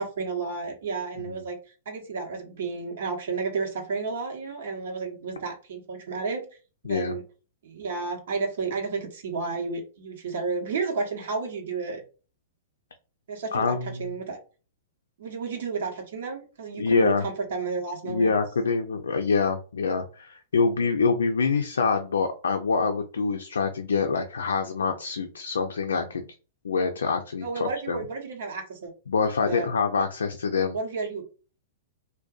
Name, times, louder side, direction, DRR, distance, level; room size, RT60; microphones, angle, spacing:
voice 1, 0.0-1.6 1.9-6.4 6.8-7.2 7.6-12.0 13.3-14.4 15.2-18.3 27.4-28.9 29.4-29.7 30.7-31.2, right 4 dB, 65° right, 2 dB, 1.0 m, -32 dB
voice 2, 6.8-7.2 13.5-14.1 16.8-17.2 18.0-26.2 26.6-28.0 29.1-30.8, left 4 dB, 80° left, 5 dB, 0.3 m, -25 dB
2.5 x 2.1 x 2.4 m, 0.35 s
hypercardioid pair, 115°, 0 cm